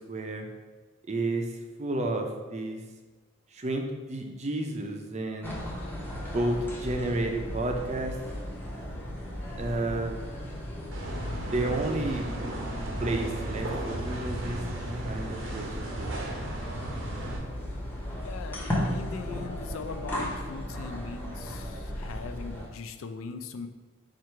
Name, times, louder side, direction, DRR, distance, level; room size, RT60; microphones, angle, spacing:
voice 1, 0.1-0.5 1.1-1.5 1.8-2.8 3.5-5.6 6.1-8.2 9.6-10.2 11.2-12.3 13.0-16.2, right 2 dB, 35° right, 3 dB, 0.5 m, -31 dB
sound 1, 5.4-22.7, left 1 dB, 10° left, 0.7 m, -36 dB
sound 2, 10.9-17.4, right 1 dB, 70° right, 0.8 m, -36 dB
voice 2, 18.2-23.7, left 5 dB, 80° left, 8 dB, 0.4 m, -40 dB
4.5 x 2.4 x 4.5 m, 1.3 s
head